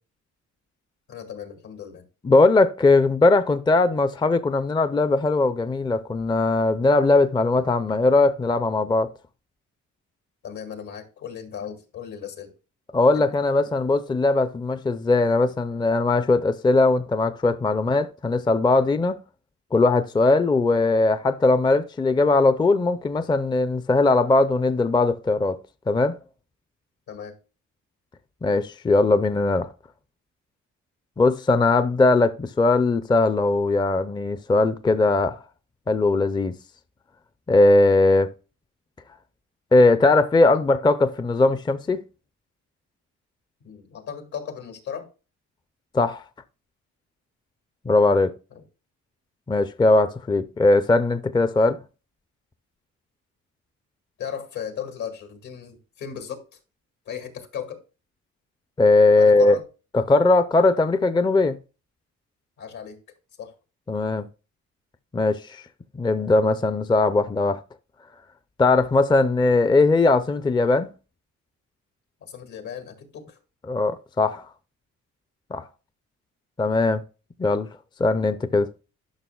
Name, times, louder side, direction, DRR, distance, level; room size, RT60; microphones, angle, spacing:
voice 1, 1.1-2.0 10.4-12.5 13.1-13.3 27.1-27.3 43.6-45.1 48.5-48.6 54.2-56.4 57.1-57.8 59.2-59.6 62.6-63.0 63.4-63.5 72.2-73.4, left 8 dB, 75° left, 2.1 m, -36 dB
voice 2, 2.2-9.1 12.9-19.2 19.7-25.6 25.9-26.2 28.4-29.7 31.2-35.4 35.9-36.6 37.5-38.3 39.7-42.0 45.9-46.2 47.9-48.3 49.5-51.8 58.8-59.5 59.9-61.6 63.9-64.3 65.1-65.6 66.0-67.6 68.6-70.9 73.7-74.5 75.5-75.6 76.6-77.0 77.4-77.7 78.0-78.7, left 3 dB, 15° left, 0.5 m, -19 dB
11.5 x 5.8 x 2.3 m
cardioid pair, 90°, 30 cm